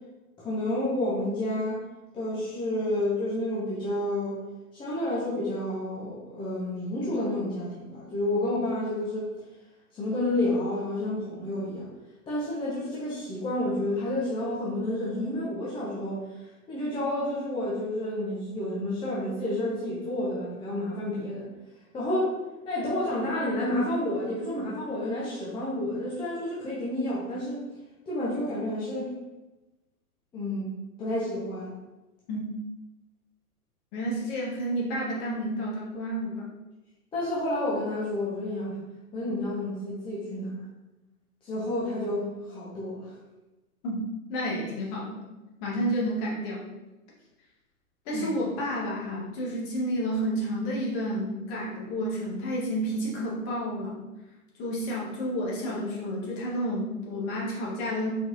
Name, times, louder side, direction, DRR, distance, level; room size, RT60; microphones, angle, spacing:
voice 1, 0.4-1.8 2.1-4.4 4.7-9.3 9.9-11.9 12.3-16.2 16.7-21.5 21.9-22.3 22.6-27.6 28.1-29.1 30.3-30.7 31.0-31.7 37.1-38.8 39.1-40.5 41.4-43.1 48.1-48.3, left 1 dB, 10° left, -8 dB, 0.7 m, -30 dB
voice 2, 33.9-36.5 43.8-44.0 44.3-45.3 45.6-46.7 48.0-54.0 54.6-58.1, equal, 30° left, -4 dB, 1.4 m, -30 dB
4.2 x 3.9 x 2.8 m, 1.1 s
figure-of-eight pair, 105°, 44 cm